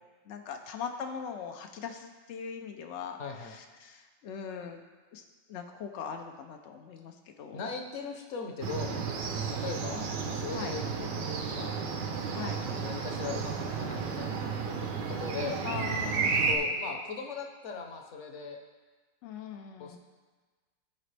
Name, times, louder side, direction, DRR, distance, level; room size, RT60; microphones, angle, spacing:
voice 1, 0.3-4.8 5.1-5.2 5.5-7.6 10.5-10.7 12.3-12.6 15.6-16.3 19.2-20.0, left 7 dB, 80° left, 4 dB, 0.6 m, -40 dB
voice 2, 3.2-3.5 7.5-10.1 10.3-11.8 12.7-14.4 14.8-14.9 15.2-15.6 16.5-18.6 19.8-20.0, left 5 dB, 50° left, 3 dB, 1.0 m, -39 dB
sound 1, 8.6-16.6, right 5 dB, 75° right, 1.4 m, -32 dB
14.0 x 5.0 x 3.3 m, 1.4 s
omnidirectional pair, 1.9 m